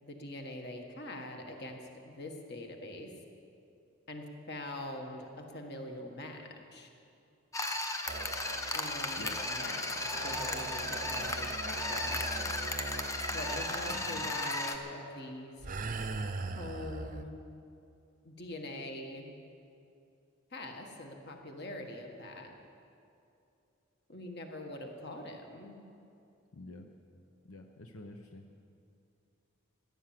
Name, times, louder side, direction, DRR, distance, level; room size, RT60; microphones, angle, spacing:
voice 1, 0.0-3.1 4.1-6.4 6.7-6.9 8.7-12.4 13.3-15.6 16.5-17.3 18.2-19.3 20.5-22.5 24.1-25.8, left 1 dB, 50° left, 3 dB, 1.6 m, -43 dB
sound 1, 7.5-14.8, left 2 dB, 15° left, 0.7 m, -35 dB
sound 2, 8.1-14.6 15.6-17.2, right 3 dB, 40° right, 0.6 m, -41 dB
voice 2, 13.9-14.2 26.5-26.9 27.4-28.4, left 2 dB, 85° left, 4 dB, 0.9 m, -47 dB
15.0 x 11.0 x 7.6 m, 2.6 s
head